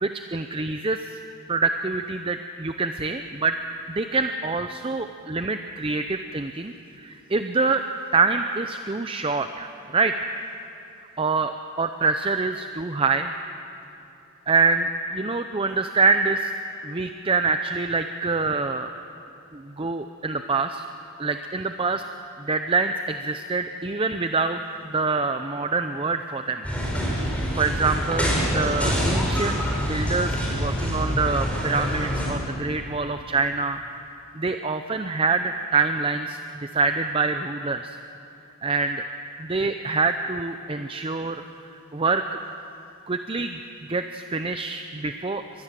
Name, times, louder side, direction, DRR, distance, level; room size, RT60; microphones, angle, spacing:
voice 1, 0.0-1.2 1.5-3.6 3.9-7.8 8.1-10.3 11.2-11.5 11.8-13.3 14.5-16.5 16.8-18.9 19.5-20.8 21.2-22.0 22.4-26.6 27.1-27.2 27.6-33.8 34.1-38.0 38.6-39.0 39.4-41.4 41.9-42.4 43.1-43.6 43.9-45.6, right 4 dB, 25° right, 8 dB, 0.6 m, -25 dB
sound 1, 26.6-32.3, equal, 5° left, 4.7 m, -25 dB
24.0 x 20.5 x 7.6 m, 2.8 s
head